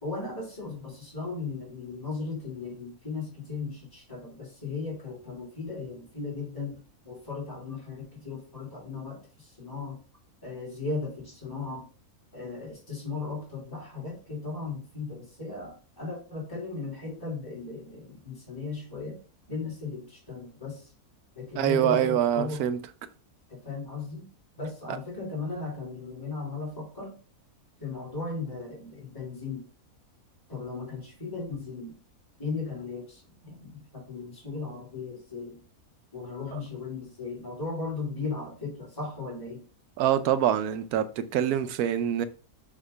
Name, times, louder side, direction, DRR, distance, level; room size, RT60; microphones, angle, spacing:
voice 1, 0.0-6.7 7.0-10.0 10.4-11.9 12.3-19.2 19.5-20.9 21.3-22.6 23.5-24.3 24.6-27.2 27.8-29.6 30.5-31.9 32.4-35.6 36.1-39.6, left 4 dB, 15° left, 2.8 m, -36 dB
voice 2, 21.6-22.8 36.5-36.6 40.0-42.2, right 10 dB, 80° right, 1.1 m, -25 dB
6.0 x 2.9 x 5.4 m
omnidirectional pair, 1.6 m